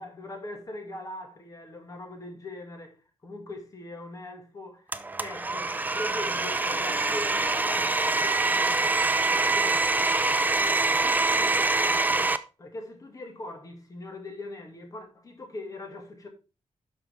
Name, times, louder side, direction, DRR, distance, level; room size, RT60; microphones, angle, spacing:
voice 1, 0.0-3.0 3.2-4.9 5.2-9.0 9.3-9.9 10.6-12.3 12.6-16.3, left 1 dB, 30° left, 2.2 m, -41 dB
Domestic sounds home sounds, 4.9-12.4, right 3 dB, 15° right, 0.5 m, -25 dB
12.0 x 5.7 x 3.7 m
wide cardioid pair, 145°, 11 cm